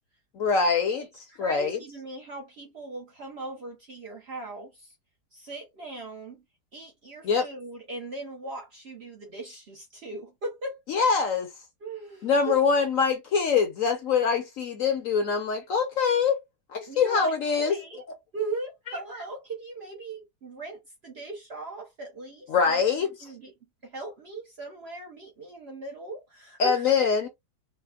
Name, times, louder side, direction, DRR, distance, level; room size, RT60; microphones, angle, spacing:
voice 1, 0.3-1.1 1.4-1.8 7.2-7.5 10.9-11.5 12.2-16.4 16.7-17.8 22.5-23.1 26.6-27.3, left 5 dB, 60° left, 0.9 m, -24 dB
voice 2, 1.0-4.9 5.3-6.4 6.7-10.8 11.8-12.6 16.9-18.0 18.3-23.5 23.8-26.7, right 2 dB, 50° right, 0.8 m, -39 dB
4.2 x 2.1 x 2.3 m
omnidirectional pair, 1.8 m